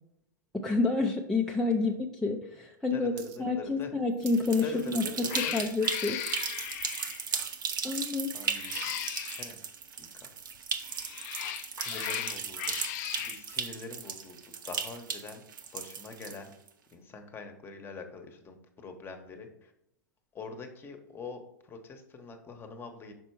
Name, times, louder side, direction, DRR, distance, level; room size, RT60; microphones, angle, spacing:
voice 1, 0.5-3.1 3.4-5.3 5.5-6.2 7.8-8.3, left 3 dB, 5° left, -1 dB, 0.5 m, -29 dB
voice 2, 2.9-3.9 4.6-5.5 8.3-9.6 10.0-10.4 11.8-14.4 14.7-15.4 15.7-16.5 16.9-19.7 20.3-23.1, left 4 dB, 20° left, 6 dB, 1.0 m, -44 dB
sound 1, 3.2-3.4 3.6-4.5 4.8-5.1 5.4-5.8 6.2-6.3 6.5-6.8 7.3-8.2 8.9-9.0, right 9 dB, 50° right, 0.9 m, -47 dB
sound 2, 4.2-16.7, right 6 dB, 85° right, 0.9 m, -36 dB
Cat, 4.6-4.8 5.3-7.3 8.4-9.5 10.8-13.4, left 13 dB, 50° left, 0.4 m, -37 dB
6.1 x 4.4 x 4.6 m, 0.81 s
hypercardioid pair, 125°, 11 cm